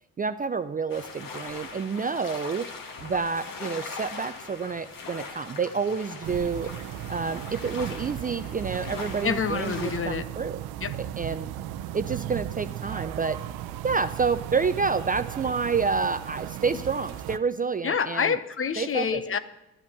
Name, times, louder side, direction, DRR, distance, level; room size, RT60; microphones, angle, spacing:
voice 1, 0.2-2.7 3.0-6.7 7.1-10.6 11.0-11.5 11.9-13.4 13.8-18.4 18.8-19.2, right 5 dB, 20° right, 11 dB, 0.5 m, -28 dB
sound 1, 0.9-10.0, left 4 dB, 55° left, 2.0 m, -41 dB
sound 2, 6.2-17.4, right 12 dB, 65° right, 0.7 m, -36 dB
voice 2, 9.2-10.2 10.8-10.9 17.8-19.4, left 6 dB, 30° left, 14 dB, 0.8 m, -27 dB
12.0 x 10.5 x 5.8 m, 0.95 s
hypercardioid pair, 55°, 41 cm